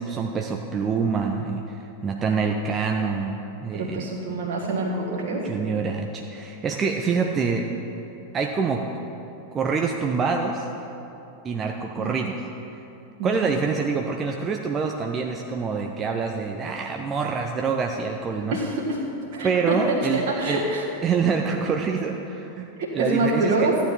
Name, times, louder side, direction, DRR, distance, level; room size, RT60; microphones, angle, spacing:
voice 1, 0.0-4.1 5.3-7.7 8.3-8.9 9.5-10.7 11.4-12.4 13.2-18.6 19.4-20.6 21.0-23.7, right 5 dB, 25° right, 2 dB, 0.6 m, -26 dB
voice 2, 3.7-5.4 12.0-12.1 13.2-13.3 18.5-19.0 19.3-20.8 22.8-23.8, right 2 dB, 50° right, -3 dB, 1.6 m, -26 dB
14.0 x 9.2 x 4.4 m, 2.9 s
figure-of-eight pair, 90°, 0 cm